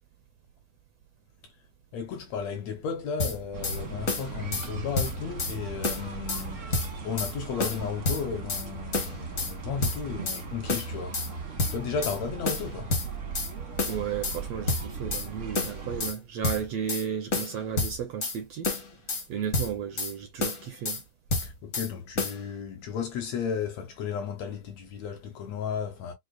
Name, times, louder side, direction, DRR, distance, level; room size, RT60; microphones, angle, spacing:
voice 1, 1.9-6.7 7.0-12.9 21.4-26.1, left 6 dB, 75° left, 1.7 m, -34 dB
sound 1, 3.2-3.8 4.1-4.7 4.9-5.5 5.8-6.4 6.7-7.3 7.6-8.6 8.9-9.5 9.8-10.4 10.7-11.3 11.6-12.2 12.4-13.5 13.8-14.4 14.7-15.3 15.5-16.2 16.4-17.0 17.3-18.4 18.6-19.2 19.5-20.1 20.4-21.0 21.3-21.9 22.2-22.4, left 3 dB, 50° left, 0.9 m, -29 dB
sound 2, 3.5-16.1, right 4 dB, 60° right, 0.8 m, -38 dB
voice 2, 13.9-18.7 19.3-21.0, right 8 dB, 80° right, 1.5 m, -34 dB
6.3 x 2.4 x 2.4 m
omnidirectional pair, 3.6 m